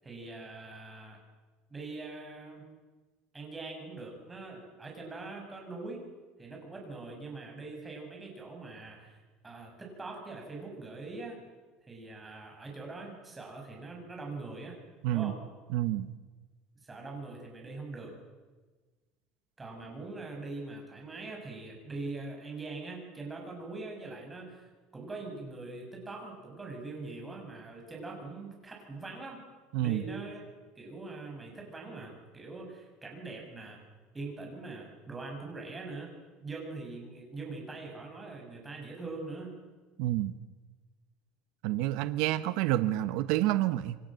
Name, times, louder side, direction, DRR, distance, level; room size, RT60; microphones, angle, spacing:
voice 1, 0.0-1.2 1.7-2.6 3.3-6.0 6.4-11.4 11.9-14.8 15.1-15.4 16.8-18.1 19.6-24.6 24.9-29.4 29.8-30.4 30.8-33.8 34.1-36.1 36.4-39.6, right 3 dB, 10° right, 0 dB, 7.5 m, -42 dB
voice 2, 15.7-16.1 29.7-30.0 40.0-40.3 41.6-44.0, right 14 dB, 65° right, 11 dB, 1.1 m, -28 dB
28.5 x 23.5 x 7.8 m, 1.3 s
cardioid pair, 160°, 0 cm